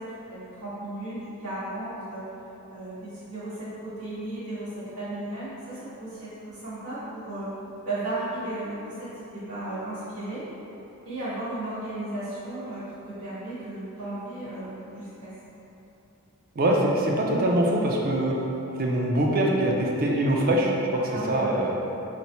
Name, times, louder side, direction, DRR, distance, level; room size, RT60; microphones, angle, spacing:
voice 1, 0.0-2.3 2.7-7.5 7.8-10.5 11.0-15.3 21.1-21.7, right 1 dB, 85° right, -12 dB, 1.5 m, -35 dB
voice 2, 16.6-18.3 18.8-21.0 21.3-21.7, right 1 dB, 40° right, -1 dB, 0.4 m, -23 dB
4.1 x 2.0 x 4.3 m, 3.0 s
head